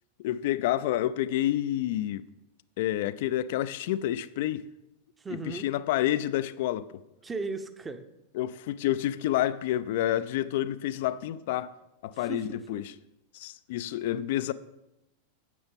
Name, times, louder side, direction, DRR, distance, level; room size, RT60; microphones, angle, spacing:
voice 1, 0.2-2.2 2.8-4.6 5.5-6.9 8.3-11.7 12.0-12.8 13.3-14.5, left 13 dB, 50° left, 0.4 m, -29 dB
voice 2, 5.2-5.7 7.2-8.1 12.1-12.8, right 3 dB, 15° right, 0.8 m, -37 dB
9.2 x 7.9 x 5.4 m
figure-of-eight pair, 90°, 0 cm